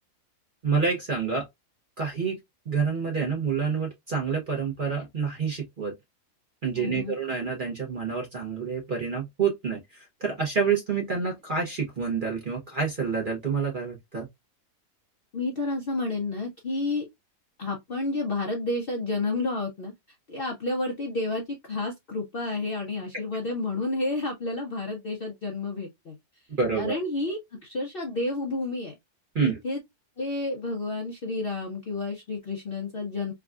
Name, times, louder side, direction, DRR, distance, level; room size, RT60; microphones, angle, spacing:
voice 1, 0.6-1.4 2.0-2.4 2.7-5.9 6.6-14.3 26.6-27.0 29.3-29.5, right 5 dB, 45° right, 0.8 m, -28 dB
voice 2, 6.8-7.1 15.3-17.1 17.6-19.9 20.3-26.2 26.8-28.9 29.4-29.8 30.2-33.3, left 2 dB, 55° left, 0.6 m, -30 dB
3.5 x 2.2 x 2.3 m
omnidirectional pair, 1.7 m